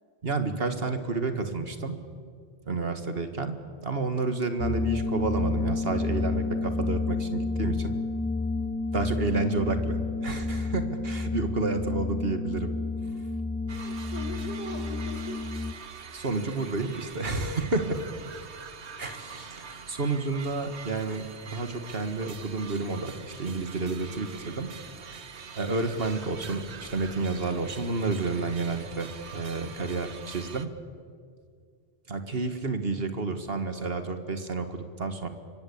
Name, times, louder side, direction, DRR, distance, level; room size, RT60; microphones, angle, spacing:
voice 1, 0.2-2.0 2.7-7.9 8.9-12.7 16.1-18.0 19.0-24.7 25.6-30.7 32.1-35.3, right 3 dB, 65° right, 8 dB, 2.0 m, -30 dB
sound 1, 4.6-15.7, left 3 dB, 10° left, 0.5 m, -30 dB
voice 2, 13.7-15.5, left 1 dB, 45° left, 2 dB, 4.0 m, -40 dB
sound 2, 13.7-30.7, right 6 dB, 85° right, 1.4 m, -44 dB
26.5 x 23.5 x 8.6 m, 2.2 s
omnidirectional pair, 1.1 m